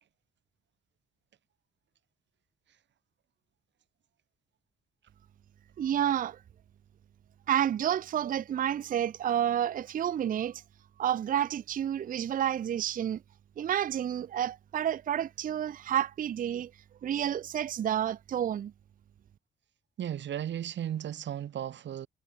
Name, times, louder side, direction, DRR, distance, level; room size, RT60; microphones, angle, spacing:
voice 1, 5.8-6.4 7.5-10.6 11.0-13.2 13.6-16.7 17.0-18.7, right 10 dB, 45° right, 0.5 m, -30 dB
voice 2, 20.0-22.1, right 10 dB, 65° right, 3.3 m, -35 dB
cardioid pair, 90°, 20 cm